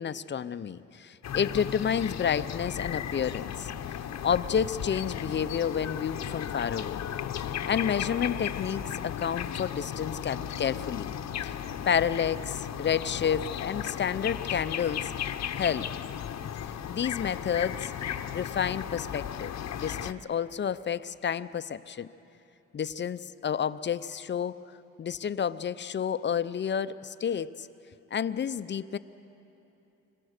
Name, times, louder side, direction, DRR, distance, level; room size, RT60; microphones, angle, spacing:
voice 1, 0.0-3.7 4.2-7.0 7.7-11.1 11.4-11.5 11.9-15.1 15.5-15.9 16.6-17.9 18.3-22.1 22.7-24.6 25.0-27.7 28.1-29.0, left 8 dB, 35° left, 13 dB, 0.6 m, -30 dB
sound 1, 1.2-20.1, left 9 dB, 60° left, 0.9 m, -35 dB
26.0 x 22.5 x 6.6 m, 3.0 s
cardioid pair, 90°, 30 cm